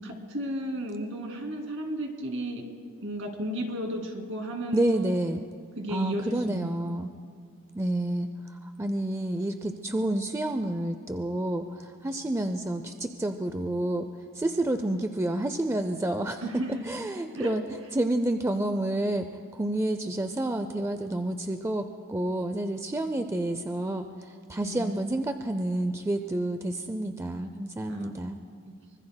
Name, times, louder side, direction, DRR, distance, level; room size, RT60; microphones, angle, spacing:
voice 1, 0.0-2.6 3.0-5.2 5.8-6.8 16.4-16.8 17.3-17.5 24.6-25.0 27.9-28.2 28.7-28.8, equal, 60° right, 2 dB, 2.5 m, -34 dB
voice 2, 4.7-5.4 5.9-7.1 7.8-8.3 8.6-14.1 14.3-16.4 16.9-17.6 18.0-28.4, right 1 dB, 15° right, 7 dB, 0.4 m, -29 dB
24.5 x 24.5 x 2.2 m, 2.1 s
head